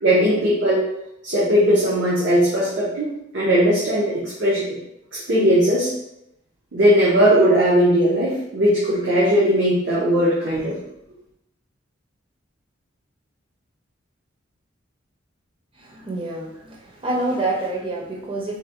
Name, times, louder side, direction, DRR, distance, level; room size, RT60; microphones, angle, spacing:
voice 1, 0.0-0.8 1.2-3.1 3.3-4.8 5.1-5.9 6.7-10.8, equal, 70° right, -8 dB, 0.8 m, -18 dB
voice 2, 15.8-18.6, right 2 dB, 30° right, -1 dB, 0.6 m, -27 dB
3.9 x 2.3 x 2.8 m, 0.81 s
head